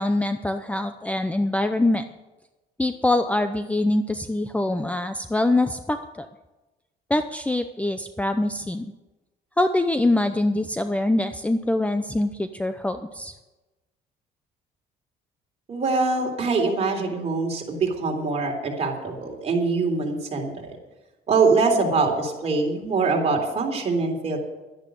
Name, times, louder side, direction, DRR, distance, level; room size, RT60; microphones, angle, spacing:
voice 1, 0.0-2.1 2.8-6.3 7.1-8.9 9.6-13.3, left 2 dB, 10° left, 9 dB, 0.6 m, -24 dB
voice 2, 15.7-20.5 21.3-24.4, right 4 dB, 40° right, 1 dB, 3.7 m, -23 dB
12.0 x 10.5 x 7.7 m, 1.1 s
cardioid pair, 110°, 17 cm